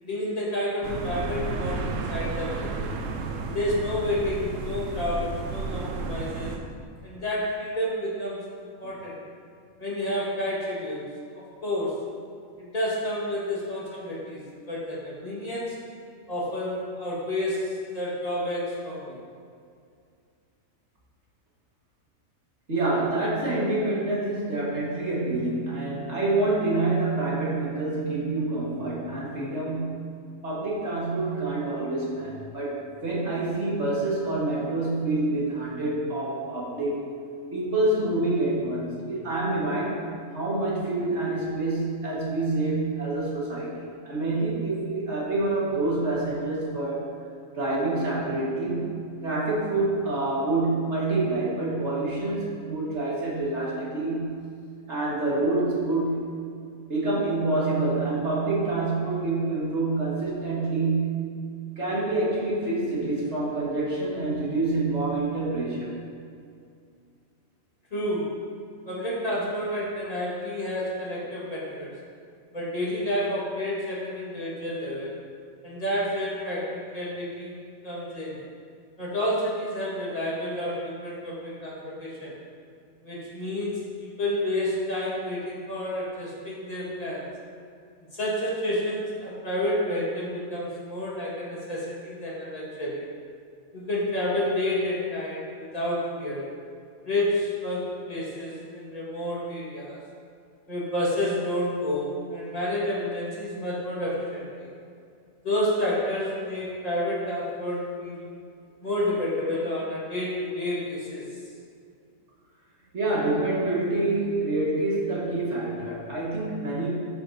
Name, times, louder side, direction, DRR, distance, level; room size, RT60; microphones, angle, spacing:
voice 1, 0.0-2.9 3.5-6.6 7.0-9.1 9.8-11.0 11.3-12.0 12.6-14.4 14.7-15.8 16.3-19.2 67.9-68.3 68.9-71.9 72.5-75.1 75.6-77.6 77.8-78.4 79.0-82.3 83.0-87.3 88.1-93.0 93.7-96.4 97.0-100.0 100.7-104.7 105.4-108.3 108.8-111.3, left 1 dB, 25° left, -7 dB, 2.0 m, -30 dB
sound 1, 0.8-6.6, right 4 dB, 70° right, 1.0 m, -32 dB
voice 2, 22.7-30.1 30.4-37.1 37.5-40.0 40.3-47.1 47.5-48.9 49.2-54.4 54.9-56.3 56.9-61.3 61.8-66.0 112.9-116.9, right 2 dB, 55° right, -6 dB, 2.1 m, -27 dB
12.5 x 6.3 x 2.8 m, 2.3 s
omnidirectional pair, 1.4 m